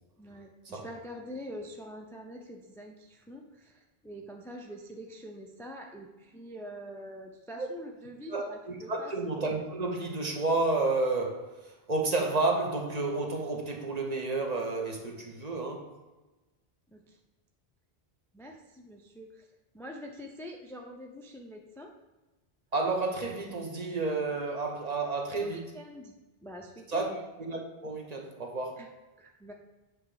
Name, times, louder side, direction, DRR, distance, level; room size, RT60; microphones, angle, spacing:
voice 1, 0.2-9.1 16.9-17.2 18.3-19.5 19.7-21.9 25.4-26.2 26.4-27.1 28.8-28.9 29.2-29.5, equal, 5° left, 1 dB, 0.4 m, -45 dB
voice 2, 8.3-15.9 22.7-25.7 26.9-27.1 27.4-28.9, right 3 dB, 45° right, 1 dB, 0.9 m, -31 dB
8.0 x 3.1 x 4.8 m, 1.1 s
omnidirectional pair, 1.0 m